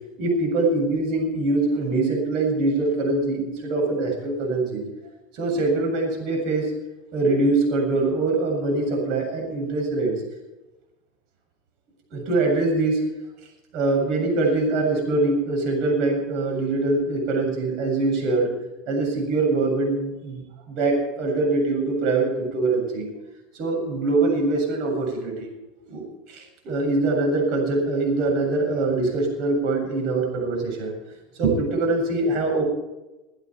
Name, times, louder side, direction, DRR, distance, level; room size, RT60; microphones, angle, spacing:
voice 1, 0.2-4.8 5.3-6.7 7.1-10.2 12.1-13.0 13.7-18.5 18.9-23.1 23.6-25.5 25.9-30.9 31.4-32.6, right 2 dB, 55° right, 1 dB, 7.5 m, -23 dB
22.5 x 11.0 x 4.6 m, 1.0 s
hypercardioid pair, 95°, 0 cm